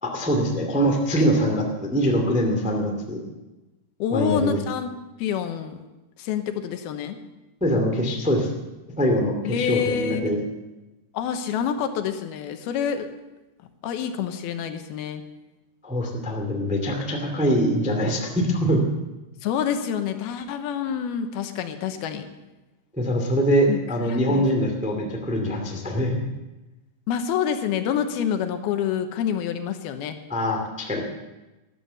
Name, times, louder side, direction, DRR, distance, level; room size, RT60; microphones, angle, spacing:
voice 1, 0.0-3.2 4.1-4.6 7.6-8.5 9.0-10.4 15.8-18.8 23.0-26.2 30.3-31.0, equal, 5° right, 1 dB, 1.1 m, -23 dB
voice 2, 4.0-4.9 5.2-5.8 6.2-7.2 9.4-10.3 11.1-13.1 13.8-15.2 19.4-22.3 23.7-24.7 27.1-30.2, left 8 dB, 80° left, 7 dB, 2.8 m, -27 dB
13.0 x 12.5 x 6.8 m, 1.1 s
omnidirectional pair, 4.5 m